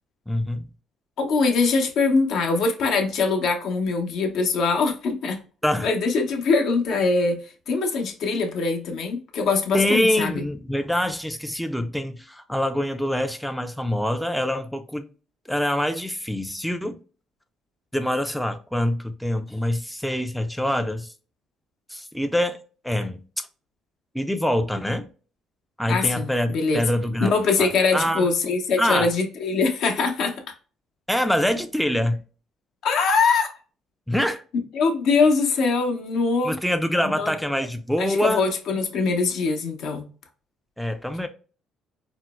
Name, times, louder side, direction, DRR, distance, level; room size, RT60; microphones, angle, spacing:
voice 1, 0.3-0.7 5.6-5.9 9.7-15.1 15.5-17.0 17.9-21.1 21.9-22.6 22.8-23.5 24.1-25.1 25.8-28.3 28.8-29.1 31.1-32.2 34.1-34.4 36.4-38.5 40.8-41.3, left 1 dB, ahead, 0.3 m, -25 dB
voice 2, 1.2-5.4 5.8-7.4 7.7-10.4 25.9-26.8 27.2-30.3 32.8-33.5 34.7-36.5 37.2-37.3 38.0-40.1, left 4 dB, 70° left, 0.7 m, -22 dB
4.3 x 2.0 x 2.2 m
cardioid pair, 95°, 0 cm